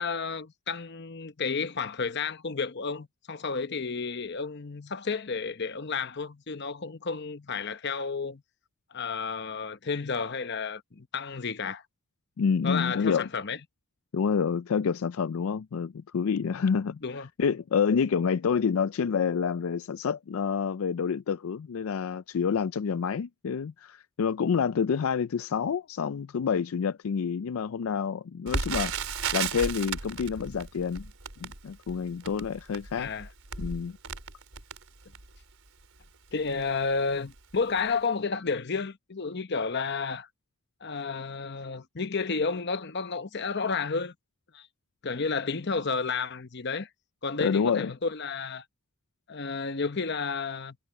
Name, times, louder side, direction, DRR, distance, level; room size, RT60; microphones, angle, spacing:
voice 1, 0.0-8.4 8.9-11.8 12.6-13.6 17.0-17.3 33.0-33.3 36.3-40.3 40.8-44.1 44.5-44.7 45.0-46.9 47.2-48.6 49.3-50.8, left 4 dB, 50° left, 0.9 m, -31 dB
voice 2, 12.4-13.3 14.1-17.0 17.4-29.1 29.3-31.1 31.4-33.1 33.6-34.0 47.4-47.9, left 6 dB, 70° left, 0.4 m, -28 dB
Crackle, 28.5-35.4 36.0-36.1 36.5-36.7 37.3-37.5 37.8-37.9, right 5 dB, 70° right, 4.0 m, -35 dB
head